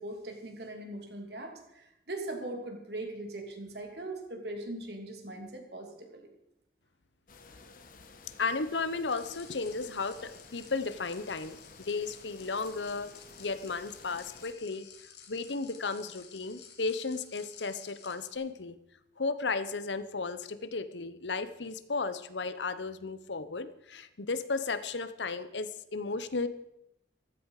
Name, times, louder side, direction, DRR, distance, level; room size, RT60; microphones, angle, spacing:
voice 1, 0.0-6.3, right 2 dB, 70° right, 3 dB, 2.9 m, -40 dB
sound 1, 7.3-14.5, left 4 dB, 50° left, 1.4 m, -54 dB
voice 2, 8.4-13.1 13.4-14.9 15.3-18.8 19.2-26.5, left 4 dB, 90° left, 13 dB, 1.0 m, -34 dB
sound 2, 9.1-18.3, left 8 dB, 70° left, 2.2 m, -54 dB
15.0 x 14.0 x 4.9 m, 0.82 s
head